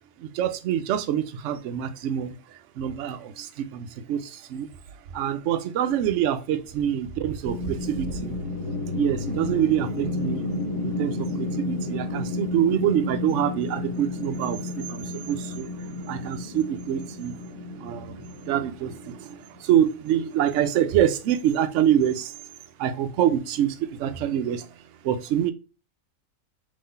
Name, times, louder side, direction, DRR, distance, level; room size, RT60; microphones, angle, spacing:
voice 1, 0.2-2.4 2.8-4.7 5.1-8.4 8.9-10.5 10.8-22.3 22.8-24.7 25.0-25.5, right 10 dB, 65° right, 0.7 m, -26 dB
sound 1, 7.5-19.6, left 2 dB, 65° left, 1.7 m, -32 dB
3.7 x 3.2 x 3.9 m
omnidirectional pair, 1.7 m